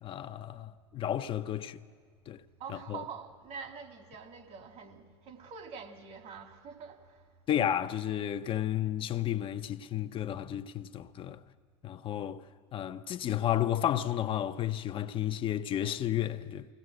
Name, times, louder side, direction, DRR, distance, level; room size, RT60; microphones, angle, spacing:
voice 1, 0.0-1.8 2.3-2.4 2.9-3.0 7.5-11.4 11.8-12.4 12.7-16.7, left 11 dB, 40° left, 0.7 m, -32 dB
voice 2, 2.6-7.4, right 6 dB, 50° right, 2.3 m, -45 dB
23.0 x 18.0 x 7.8 m
hypercardioid pair, 95°, 14 cm